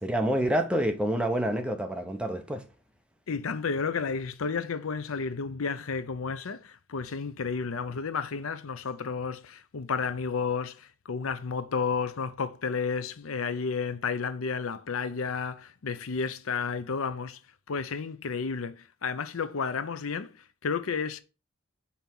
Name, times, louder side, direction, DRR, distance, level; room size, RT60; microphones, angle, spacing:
voice 1, 0.0-2.6, right 1 dB, 5° right, 0.9 m, -27 dB
voice 2, 3.3-17.4 17.7-21.2, left 5 dB, 80° left, 0.6 m, -32 dB
5.4 x 4.3 x 6.1 m
head